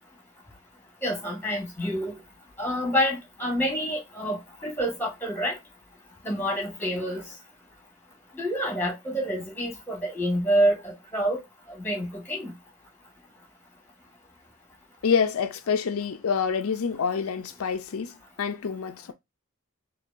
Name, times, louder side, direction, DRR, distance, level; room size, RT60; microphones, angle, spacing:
voice 1, 1.0-2.2 2.6-5.6 6.2-7.3 8.4-11.4 11.7-12.5, equal, 10° left, 1.4 m, -27 dB
voice 2, 15.0-19.1, left 6 dB, 80° left, 0.5 m, -27 dB
4.5 x 2.8 x 2.5 m
head